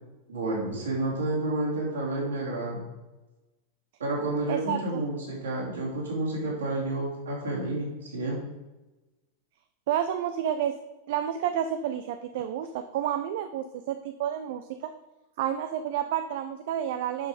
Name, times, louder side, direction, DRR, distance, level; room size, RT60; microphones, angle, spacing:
voice 1, 0.3-2.8 4.0-8.4, right 2 dB, 70° right, -3 dB, 3.6 m, -30 dB
voice 2, 4.5-5.0 9.9-10.7 11.1-14.9 15.4-17.3, right 10 dB, 50° right, 9 dB, 0.5 m, -30 dB
9.9 x 5.9 x 5.0 m, 1.1 s
figure-of-eight pair, 90°, 0 cm